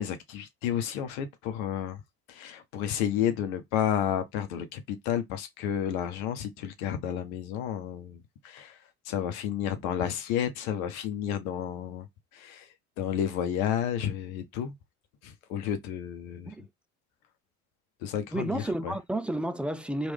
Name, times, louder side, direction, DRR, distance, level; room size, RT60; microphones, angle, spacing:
voice 1, 0.0-2.0 2.3-8.8 9.0-12.1 12.3-14.7 15.2-16.5 18.0-18.9, left 9 dB, 70° left, 0.9 m, -31 dB
voice 2, 18.3-20.1, right 1 dB, 5° right, 0.4 m, -31 dB
3.1 x 2.6 x 3.5 m
figure-of-eight pair, 50°, 43 cm